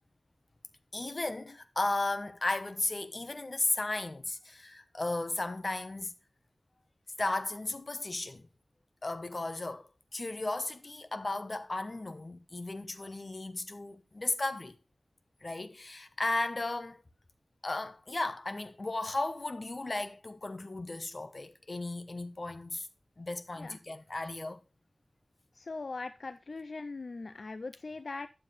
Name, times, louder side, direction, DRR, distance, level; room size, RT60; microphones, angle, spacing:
voice 1, 0.9-6.1 7.2-8.5 9.0-14.7 15.4-17.0 17.6-22.9 23.2-24.6, left 2 dB, 45° left, 0.9 m, -35 dB
voice 2, 25.5-28.3, left 3 dB, 70° left, 0.4 m, -40 dB
11.0 x 7.3 x 3.2 m
wide cardioid pair, 85°, 0 cm